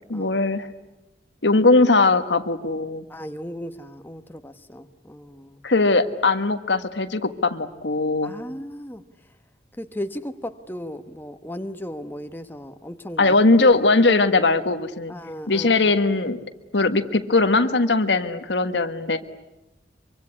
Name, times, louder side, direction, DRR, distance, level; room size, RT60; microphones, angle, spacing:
voice 1, 0.1-0.7 1.4-3.1 5.6-8.3 13.2-15.1 15.5-16.4 16.7-19.2, left 3 dB, 90° left, 8 dB, 1.5 m, -20 dB
voice 2, 3.1-5.6 8.2-9.0 9.8-13.4 15.1-15.9, equal, 10° left, 7 dB, 1.2 m, -36 dB
24.5 x 24.5 x 9.9 m, 1.0 s
head